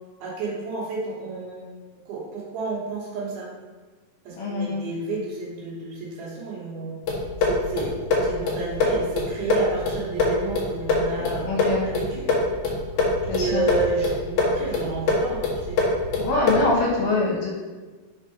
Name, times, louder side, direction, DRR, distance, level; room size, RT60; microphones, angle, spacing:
voice 1, 0.2-1.7 2.1-3.5 4.2-7.0 7.4-11.5 11.8-12.3 13.2-15.8 16.9-17.1, right 3 dB, 70° right, -4 dB, 3.0 m, -31 dB
voice 2, 4.4-4.8 11.4-11.9 13.3-13.6 16.2-17.5, left 3 dB, 70° left, -3 dB, 2.6 m, -24 dB
sound 1, 7.1-16.8, left 3 dB, 90° left, 1.3 m, -25 dB
6.1 x 4.0 x 5.3 m, 1.3 s
omnidirectional pair, 4.8 m